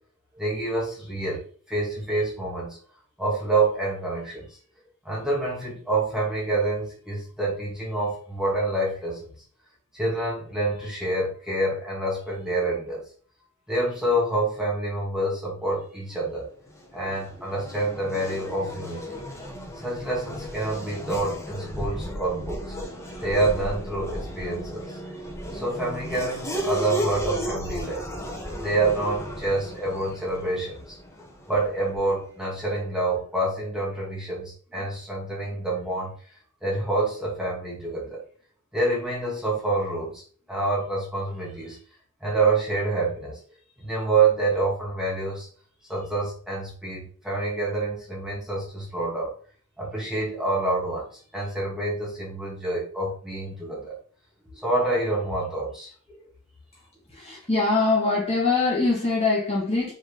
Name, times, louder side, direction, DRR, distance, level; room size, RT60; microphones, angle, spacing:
voice 1, 0.4-2.8 3.2-4.5 5.0-9.3 9.9-13.0 13.7-16.5 16.9-19.2 19.8-22.7 23.2-25.0 25.5-28.0 28.6-31.0 31.5-36.1 36.6-38.2 38.7-40.2 40.5-41.8 42.2-43.4 43.8-45.5 45.9-49.3 49.8-51.1 51.3-54.0 54.5-55.9, right 2 dB, 5° right, -5 dB, 2.5 m, -27 dB
Race car auto racing / Accelerating revving vroom, 16.6-32.2, equal, 15° left, 1.3 m, -35 dB
voice 2, 57.1-59.9, left 3 dB, 30° left, -5 dB, 2.3 m, -23 dB
5.2 x 4.9 x 4.1 m, 0.42 s
head